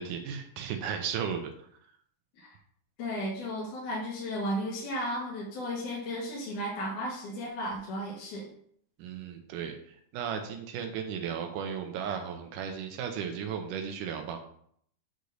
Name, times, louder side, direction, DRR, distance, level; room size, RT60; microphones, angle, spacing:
voice 1, 0.0-1.4 9.0-9.8 10.1-14.4, right 7 dB, 90° right, 5 dB, 2.5 m, -35 dB
voice 2, 3.0-8.5, equal, 75° left, -5 dB, 3.1 m, -34 dB
8.2 x 4.0 x 6.5 m, 0.65 s
omnidirectional pair, 3.6 m